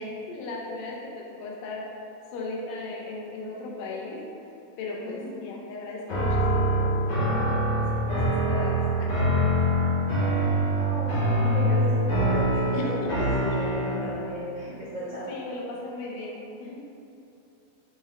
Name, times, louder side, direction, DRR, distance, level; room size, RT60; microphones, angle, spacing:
voice 1, 0.0-1.8 2.3-4.2 4.8-8.2 8.5-9.3 12.7-13.1 13.5-13.6 15.1-16.8, left 2 dB, 85° left, -3 dB, 2.2 m, -37 dB
sound 1, 6.1-14.2, right 1 dB, 60° left, 1.1 m, -24 dB
voice 2, 10.7-15.4, equal, 70° right, -13 dB, 1.2 m, -34 dB
5.7 x 2.2 x 3.4 m, 2.8 s
omnidirectional pair, 3.7 m